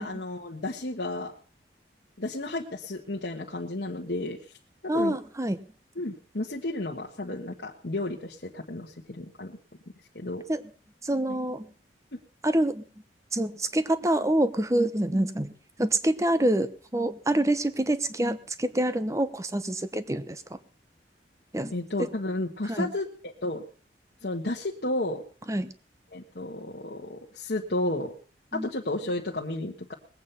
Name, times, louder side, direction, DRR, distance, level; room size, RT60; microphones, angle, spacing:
voice 1, 0.0-1.3 2.2-4.4 4.8-5.2 6.0-9.6 10.1-10.4 21.7-23.1 23.4-23.6 24.2-25.2 26.1-28.1 28.5-29.9, left 2 dB, 65° left, -2 dB, 1.4 m, -32 dB
voice 2, 4.9-5.6 10.5-10.6 11.0-11.7 12.4-12.8 13.3-15.5 15.8-20.6 21.5-21.7 22.7-22.9 25.5-25.7 28.5-28.7, right 1 dB, 15° right, 12 dB, 0.9 m, -26 dB
20.0 x 8.6 x 5.7 m, 0.42 s
head